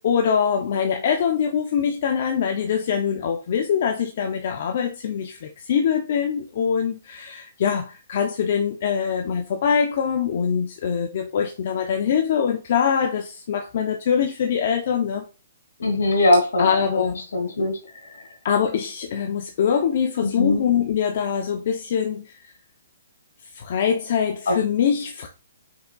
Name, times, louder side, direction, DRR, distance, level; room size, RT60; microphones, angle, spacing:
voice 1, 0.0-15.3 16.6-17.2 18.4-22.5 23.5-25.3, left 7 dB, 45° left, 0.5 m, -23 dB
voice 2, 15.8-16.7 17.3-17.8 18.1-18.2 20.2-20.6 24.5-24.6, left 1 dB, 80° left, 2.2 m, -20 dB
5.5 x 3.8 x 2.3 m
hypercardioid pair, 165°, 0 cm